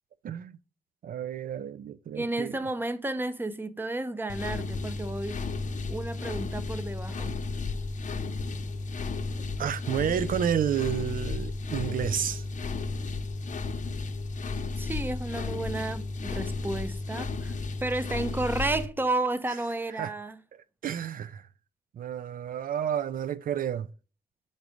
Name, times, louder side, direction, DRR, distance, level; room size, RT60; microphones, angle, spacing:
voice 1, 0.2-0.6 1.0-2.6 9.6-12.5 19.5-19.6 19.9-20.1 20.5-21.5 21.9-23.9, right 9 dB, 90° right, 0.4 m, -31 dB
voice 2, 2.1-5.4 5.9-7.4 14.8-20.4, right 2 dB, 15° right, 0.6 m, -32 dB
sound 1, 4.3-18.9, left 3 dB, 65° left, 0.7 m, -33 dB
6.1 x 4.0 x 4.9 m
wide cardioid pair, 120°, 14 cm